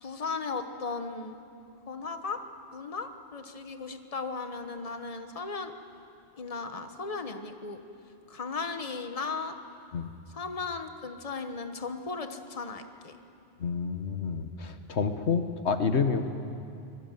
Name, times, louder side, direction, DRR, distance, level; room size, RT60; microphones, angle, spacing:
voice 1, 0.0-1.4 1.9-2.4 2.7-5.7 6.4-7.8 8.3-9.5 10.3-13.2, left 4 dB, 35° left, 7 dB, 1.4 m, -36 dB
voice 2, 13.6-16.3, left 5 dB, 75° left, 8 dB, 1.5 m, -29 dB
25.0 x 21.5 x 9.2 m, 2.5 s
omnidirectional pair, 1.1 m